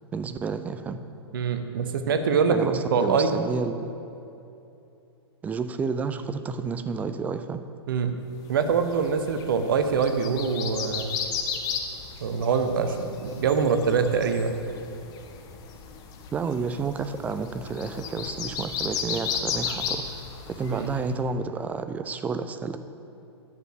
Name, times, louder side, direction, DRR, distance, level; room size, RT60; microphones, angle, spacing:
voice 1, 0.1-1.0 2.5-3.9 5.4-7.6 16.3-20.2 20.5-22.8, right 5 dB, 10° right, 10 dB, 0.4 m, -30 dB
voice 2, 1.3-3.3 7.9-8.2 8.5-11.1 12.2-14.6 20.7-20.9, right 5 dB, 50° right, 7 dB, 0.9 m, -24 dB
sound 1, 8.6-21.1, left 6 dB, 25° left, 0.9 m, -35 dB
10.0 x 6.8 x 6.8 m, 2.8 s
figure-of-eight pair, 105°, 14 cm